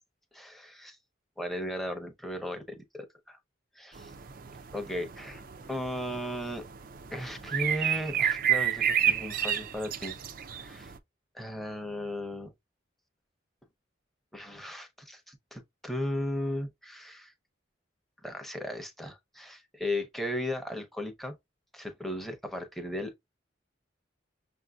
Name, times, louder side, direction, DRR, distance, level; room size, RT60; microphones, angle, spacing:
voice 1, 0.4-1.0 1.4-3.4 3.8-4.1 4.7-5.4 5.7-6.6 7.1-10.9 11.3-12.5 14.3-17.3 18.2-21.4 21.7-23.1, left 1 dB, ahead, 0.8 m, -36 dB
sound 1, 4.0-11.0, right 9 dB, 45° right, 0.4 m, -31 dB
6.4 x 2.6 x 2.3 m
head